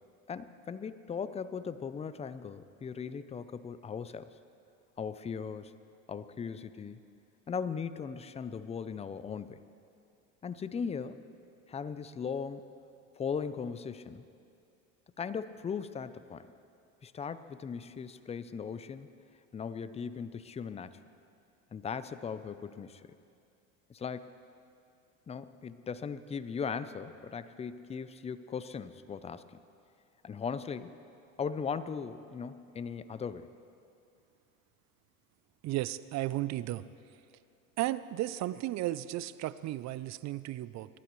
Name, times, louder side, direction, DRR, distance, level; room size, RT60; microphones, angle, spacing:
voice 1, 0.3-4.3 5.0-5.8 6.1-7.1 7.5-9.7 10.4-11.2 11.7-12.7 13.2-14.2 15.2-16.5 17.0-19.1 19.5-21.0 21.7-23.1 23.9-24.3 25.3-29.6 30.2-30.9 31.4-33.5, left 6 dB, 15° left, 13 dB, 0.5 m, -38 dB
voice 2, 35.6-36.8 37.8-40.9, right 15 dB, 45° right, 16 dB, 0.5 m, -34 dB
24.0 x 11.5 x 3.1 m, 2.5 s
hypercardioid pair, 90°, 39 cm